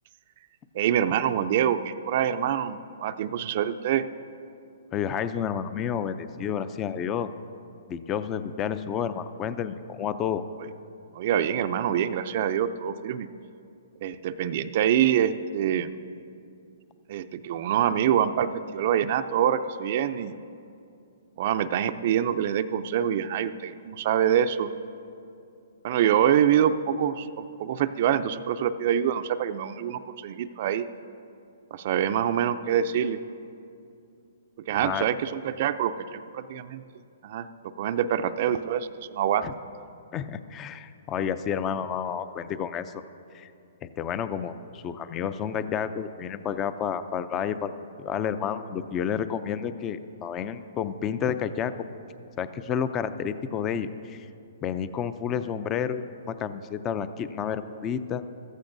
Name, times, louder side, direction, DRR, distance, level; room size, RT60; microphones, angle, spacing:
voice 1, 0.7-4.1 11.1-13.3 14.0-15.9 17.1-20.3 21.4-24.7 25.8-30.9 31.7-33.2 34.7-36.8 37.2-37.5 37.8-39.4, right 9 dB, 50° right, 10 dB, 0.4 m, -25 dB
voice 2, 4.9-7.3 7.9-10.4 34.8-35.1 39.4-39.5 40.1-43.0 43.3-43.5 43.8-47.7 48.0-51.7 52.4-54.3 54.6-58.2, left 8 dB, 25° left, 12 dB, 0.4 m, -30 dB
14.5 x 14.0 x 2.6 m, 2.5 s
hypercardioid pair, 140°, 0 cm